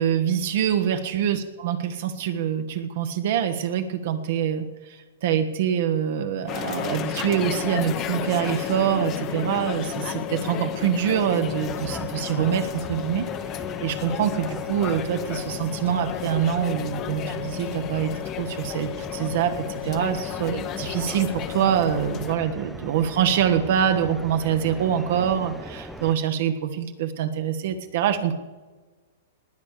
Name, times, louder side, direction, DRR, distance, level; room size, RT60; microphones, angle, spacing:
voice 1, 0.0-13.3 13.8-28.3, right 9 dB, 55° right, 8 dB, 1.3 m, -25 dB
sound 1, 6.5-22.4, left 10 dB, 25° left, 0.9 m, -32 dB
sound 2, 11.4-26.2, equal, ahead, 0.6 m, -41 dB
19.5 x 8.7 x 6.7 m, 1.3 s
hypercardioid pair, 160°, 0 cm